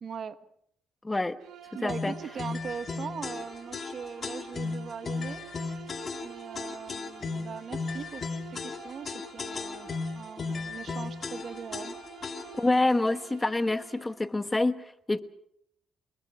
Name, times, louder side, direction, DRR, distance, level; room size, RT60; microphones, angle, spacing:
voice 1, 0.0-0.4 1.7-5.4 5.7-5.8 6.2-8.2 8.5-9.9 10.1-11.9, right 6 dB, 50° right, 12 dB, 1.2 m, -40 dB
voice 2, 1.0-1.4 1.8-2.1 12.5-15.2, left 2 dB, 15° left, 12 dB, 1.1 m, -27 dB
Bowed string instrument, 1.4-14.2, right 10 dB, 85° right, 4.0 m, -49 dB
sound 1, 1.9-12.7, left 4 dB, 40° left, 2.0 m, -36 dB
25.0 x 21.0 x 6.2 m, 0.73 s
cardioid pair, 90°, 0 cm